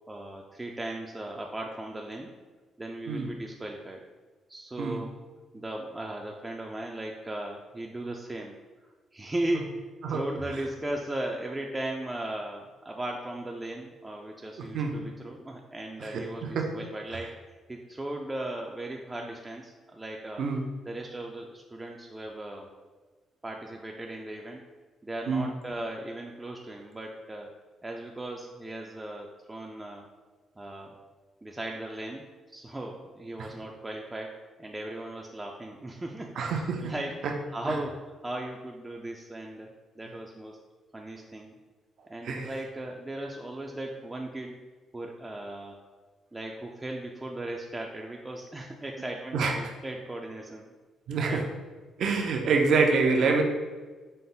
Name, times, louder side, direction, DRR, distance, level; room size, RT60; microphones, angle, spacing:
voice 1, 0.1-2.3 2.8-4.0 4.5-5.1 5.5-8.6 9.1-20.4 20.8-22.7 23.4-24.6 25.0-27.5 27.8-30.1 30.6-31.0 31.4-37.2 37.5-39.7 40.0-40.6 40.9-41.5 42.0-44.6 44.9-45.8 46.3-50.7 51.3-51.4, right 1 dB, 15° right, 0 dB, 0.4 m, -37 dB
voice 2, 16.1-16.8 20.4-20.7 25.3-25.5 33.4-33.5 36.4-36.9 37.2-37.3 37.7-37.8 42.2-42.5 49.3-49.5 51.1-51.5 52.0-53.4, right 4 dB, 70° right, 3 dB, 0.6 m, -26 dB
5.3 x 2.0 x 3.8 m, 1.3 s
cardioid pair, 90°, 0 cm